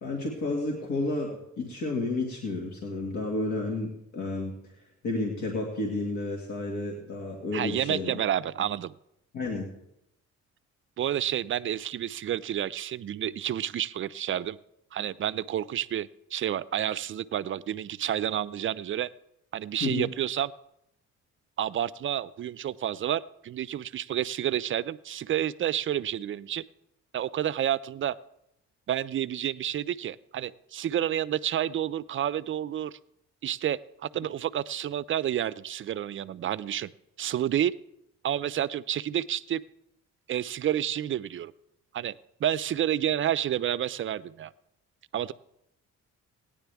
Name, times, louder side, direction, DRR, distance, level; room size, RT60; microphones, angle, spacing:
voice 1, 0.0-4.5 5.0-8.1 9.3-9.7 19.8-20.1, left 2 dB, 75° left, 0 dB, 2.0 m, -31 dB
voice 2, 7.5-8.9 11.0-14.6 14.9-19.1 19.5-20.5 21.6-26.6 27.1-28.2 28.9-33.0 33.4-36.9 37.2-37.7 38.2-39.6 40.3-41.5 41.9-42.1 42.4-44.5 45.1-45.3, right 11 dB, 45° right, 16 dB, 0.4 m, -30 dB
17.5 x 9.9 x 3.4 m, 0.80 s
cardioid pair, 90°, 30 cm